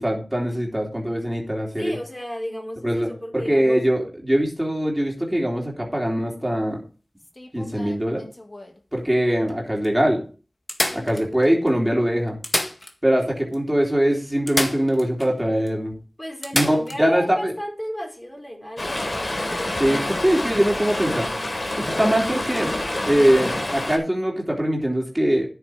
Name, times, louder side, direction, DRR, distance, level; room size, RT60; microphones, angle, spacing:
voice 1, 0.0-2.0 2.8-6.8 7.5-8.2 8.9-10.2 10.9-12.4 13.0-15.9 16.5-17.5 19.8-21.3 21.8-22.7 23.1-25.5, equal, 10° right, -1 dB, 3.5 m, -22 dB
voice 2, 1.8-3.8 10.8-11.3 16.2-19.4, equal, 20° left, -1 dB, 4.3 m, -34 dB
sound 1, 7.2-8.8 9.5-9.6 9.8-9.9 10.7-11.7 12.3-13.3 13.5-13.6 14.5-15.3 15.7-15.8 16.4-17.0 19.0-19.1, left 1 dB, 40° left, 1.8 m, -29 dB
Stream, 18.8-24.0, left 1 dB, 55° left, 3.9 m, -27 dB
10.5 x 8.3 x 4.9 m, 0.37 s
cardioid pair, 40°, 0 cm